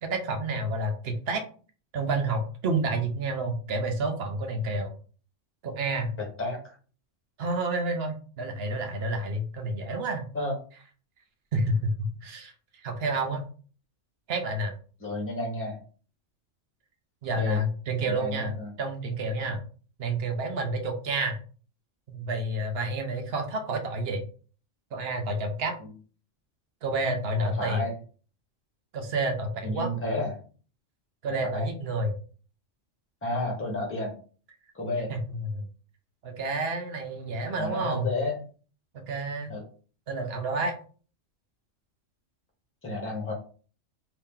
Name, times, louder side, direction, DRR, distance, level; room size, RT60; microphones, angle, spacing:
voice 1, 0.0-1.4 1.9-4.9 5.6-6.1 7.4-10.2 11.5-12.5 12.8-13.4 14.3-14.8 17.2-18.5 18.8-19.6 20.0-21.4 22.1-24.2 24.9-25.8 26.8-27.8 28.9-29.9 31.2-32.1 35.1-35.7 36.2-38.1 38.9-39.5 40.1-40.7, right 2 dB, 60° right, 5 dB, 0.8 m, -29 dB
voice 2, 6.4-6.8 10.3-10.6 15.0-15.8 17.4-17.6 18.1-18.7 27.4-27.9 29.6-30.3 31.5-31.7 33.2-34.1 34.7-35.1 37.6-38.4 39.5-39.6 42.8-43.3, left 2 dB, 10° left, 0 dB, 0.9 m, -31 dB
2.9 x 2.7 x 3.6 m, 0.40 s
omnidirectional pair, 1.3 m